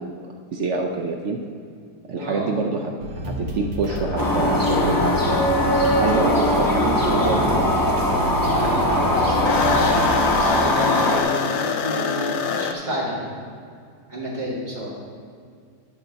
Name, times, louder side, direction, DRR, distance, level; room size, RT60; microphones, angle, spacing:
voice 1, 0.0-1.4 2.1-5.5 6.0-7.7, right 4 dB, 70° right, 1 dB, 0.6 m, -26 dB
voice 2, 2.2-2.6 8.4-9.9 10.5-13.3 14.1-14.9, equal, 25° right, -8 dB, 2.3 m, -29 dB
sound 1, 3.0-10.5, equal, 90° right, 1.8 m, -30 dB
sound 2, 3.9-8.3 8.6-12.7, left 6 dB, 90° left, 0.6 m, -28 dB
Old Town Violin with Street Sounds, 4.2-11.2, left 1 dB, 15° left, 0.8 m, -21 dB
11.5 x 5.7 x 4.0 m, 2.2 s
omnidirectional pair, 1.8 m